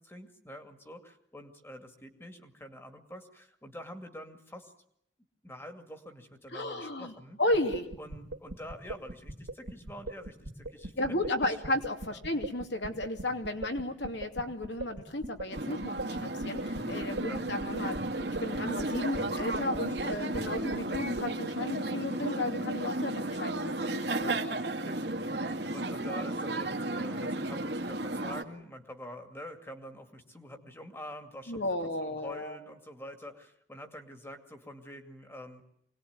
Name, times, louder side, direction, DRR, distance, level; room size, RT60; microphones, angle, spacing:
voice 1, 0.0-4.7 5.4-7.4 8.0-11.5 12.1-12.2 13.2-13.4 17.2-17.4 18.6-18.7 19.8-20.1 20.4-20.7 24.2-31.6 32.0-35.6, left 1 dB, 15° left, 6 dB, 2.2 m, -46 dB
voice 2, 6.5-7.1 7.4-7.9 11.0-24.3 31.5-32.6, left 1 dB, 65° left, 5 dB, 2.7 m, -34 dB
sound 1, 7.5-21.3, right 1 dB, 80° right, 3.0 m, -40 dB
sound 2, 15.5-28.4, right 2 dB, 60° right, 2.2 m, -34 dB
25.5 x 19.5 x 9.5 m, 0.73 s
head